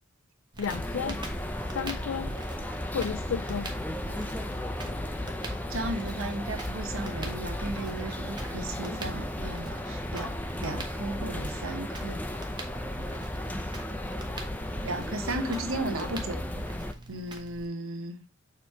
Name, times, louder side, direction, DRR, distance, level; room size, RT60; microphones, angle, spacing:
Crackle, 0.5-17.7, right 1 dB, 20° right, 1.1 m, -43 dB
voice 1, 0.6-1.2 1.7-2.3 2.9-3.7, left 7 dB, 75° left, 0.4 m, -32 dB
sound 1, 0.7-16.9, left 1 dB, 10° left, 0.5 m, -35 dB
voice 2, 5.7-12.2 14.8-16.4 17.1-18.2, right 2 dB, 90° right, 1.0 m, -35 dB
6.9 x 3.2 x 4.6 m
head